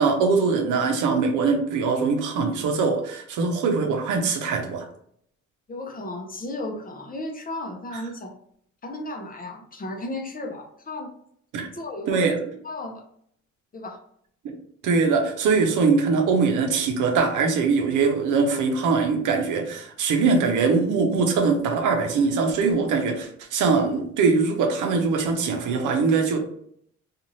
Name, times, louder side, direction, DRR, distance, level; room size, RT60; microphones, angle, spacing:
voice 1, 0.0-4.9 7.9-8.0 11.5-11.7 12.1-12.4 14.8-26.4, right 4 dB, 85° right, 4 dB, 0.7 m, -22 dB
voice 2, 5.7-8.4 8.8-11.1 11.7-12.3 12.6-13.0 13.7-14.0, left 2 dB, 30° left, 2 dB, 0.6 m, -34 dB
2.6 x 2.5 x 3.0 m, 0.67 s
cardioid pair, 90°, 30 cm